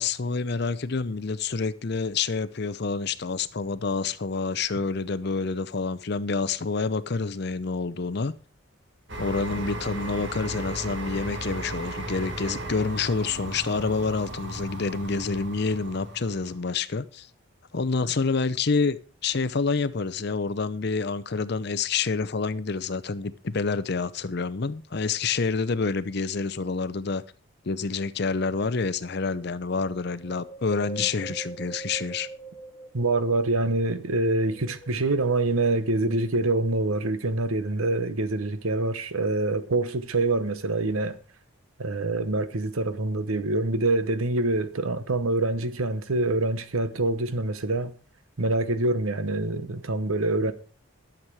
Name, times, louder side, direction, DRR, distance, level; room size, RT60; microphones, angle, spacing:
voice 1, 0.0-8.3 9.2-17.3 17.7-27.2 27.6-32.3, left 4 dB, 50° left, 0.6 m, -28 dB
sound 1, 9.1-16.6, right 1 dB, 55° right, 1.7 m, -36 dB
Wind, 30.2-33.8 34.3-35.5 36.1-36.2, right 4 dB, 25° left, 1.0 m, -42 dB
voice 2, 32.9-41.2 41.8-47.9 48.4-50.5, right 2 dB, 85° right, 1.0 m, -25 dB
12.0 x 7.4 x 4.7 m
head